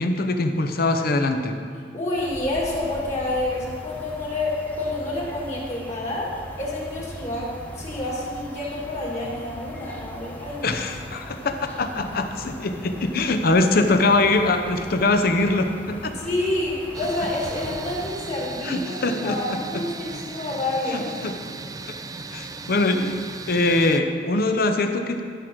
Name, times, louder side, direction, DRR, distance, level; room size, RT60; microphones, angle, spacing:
voice 1, 0.0-1.6 10.6-16.1 18.6-19.8 20.9-21.3 21.9-22.0 22.3-23.2 23.5-25.2, left 2 dB, 55° left, 7 dB, 0.8 m, -22 dB
voice 2, 1.9-6.3 6.6-10.8 16.1-21.1, left 2 dB, 40° left, -4 dB, 2.2 m, -28 dB
sound 1, 2.1-18.1, equal, 10° left, 1.0 m, -40 dB
sound 2, 16.9-24.0, right 3 dB, 20° right, 0.4 m, -37 dB
12.5 x 5.1 x 6.1 m, 2.1 s
head